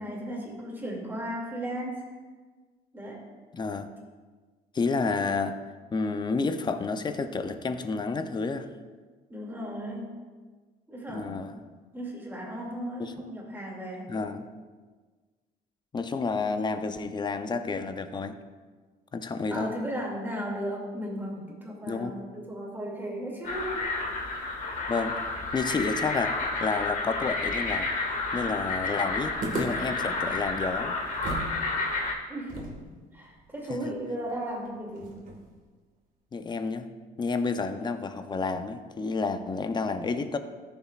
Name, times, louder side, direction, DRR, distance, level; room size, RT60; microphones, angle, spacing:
voice 1, 0.0-2.0 2.9-3.2 9.3-10.1 10.9-11.4 11.9-14.1 19.5-23.8 32.3-32.6 33.1-35.2, equal, 10° right, -2 dB, 2.5 m, -35 dB
voice 2, 3.5-3.9 4.7-5.6 5.9-8.7 11.1-11.6 13.0-13.1 14.1-14.5 15.9-18.4 19.1-19.7 21.9-22.1 24.9-25.2 25.5-27.9 28.3-31.0 33.7-33.9 36.3-36.9 37.2-40.4, left 4 dB, 25° left, 9 dB, 0.6 m, -30 dB
sound 1, 23.4-32.1, left 3 dB, 50° left, 1.7 m, -31 dB
sound 2, 29.4-31.6 31.8-31.9 32.5-35.6, right 1 dB, 50° right, 1.8 m, -38 dB
14.0 x 7.0 x 2.5 m, 1.4 s
cardioid pair, 110°, 17 cm